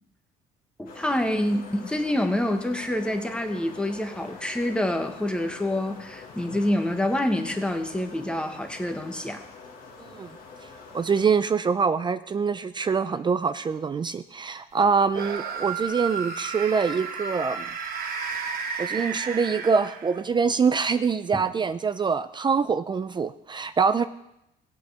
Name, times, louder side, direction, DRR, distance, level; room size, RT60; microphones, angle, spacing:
voice 1, 0.8-9.4, left 1 dB, 5° left, 5 dB, 1.3 m, -27 dB
sound 1, 0.9-11.3, left 4 dB, 60° left, 1.8 m, -45 dB
voice 2, 10.0-10.3 10.9-17.7 18.8-24.1, right 5 dB, 25° right, 12 dB, 0.5 m, -24 dB
sound 2, 15.1-20.3, right 5 dB, 60° right, 1.4 m, -32 dB
18.5 x 7.8 x 3.4 m, 0.82 s
cardioid pair, 110°, 17 cm